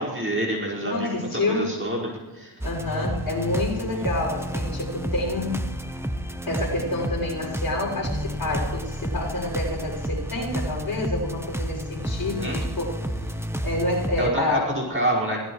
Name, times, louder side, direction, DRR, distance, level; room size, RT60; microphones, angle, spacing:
voice 1, 0.0-2.5 3.9-4.0 12.4-12.6 14.2-15.4, right 1 dB, 25° right, -4 dB, 5.1 m, -27 dB
voice 2, 0.8-1.7 2.6-5.6 6.5-12.9 13.6-14.7, left 2 dB, 50° left, -3 dB, 6.7 m, -28 dB
sound 1, 2.6-14.3, equal, 5° right, 1.0 m, -30 dB
23.5 x 18.0 x 3.2 m, 1.3 s
wide cardioid pair, 95°, 47 cm